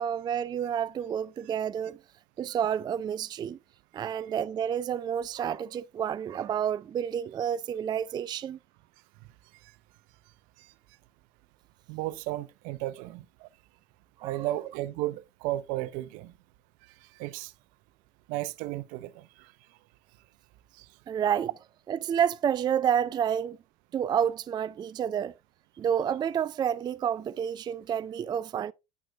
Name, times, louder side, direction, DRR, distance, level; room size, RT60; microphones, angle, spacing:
voice 1, 0.0-2.0 2.4-3.6 3.9-8.6 14.2-14.6 21.1-21.5 21.9-23.6 23.9-25.3 25.8-28.7, right 8 dB, 25° right, 0.4 m, -29 dB
voice 2, 11.9-13.5 14.2-16.3 17.2-17.5 18.3-19.5 20.8-20.9, right 16 dB, 60° right, 0.7 m, -34 dB
9.5 x 8.9 x 2.4 m
hypercardioid pair, 75°, 16 cm